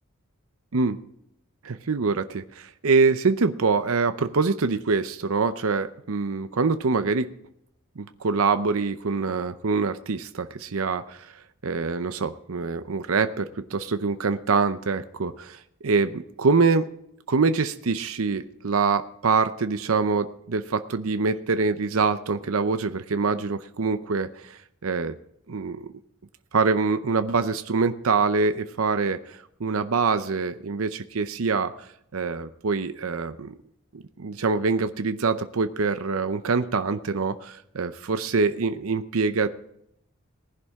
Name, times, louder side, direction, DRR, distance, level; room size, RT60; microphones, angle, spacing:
voice 1, 1.6-7.3 8.0-11.3 11.6-16.9 17.3-25.2 25.5-25.9 26.5-31.7 32.1-33.5 33.9-39.5, right 4 dB, 85° right, 10 dB, 0.7 m, -25 dB
19.5 x 11.0 x 3.6 m, 0.75 s
head